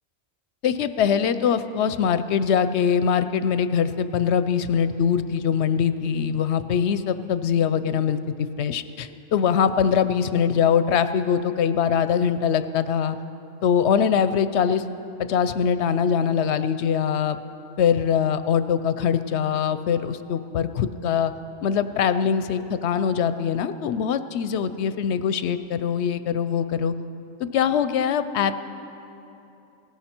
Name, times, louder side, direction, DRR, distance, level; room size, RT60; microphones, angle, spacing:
voice 1, 0.6-8.2 8.6-13.2 13.6-14.8 15.3-17.4 17.8-21.3 21.6-26.9 27.5-28.6, left 7 dB, 65° left, 12 dB, 0.8 m, -22 dB
17.5 x 17.0 x 4.4 m, 2.9 s
omnidirectional pair, 1.4 m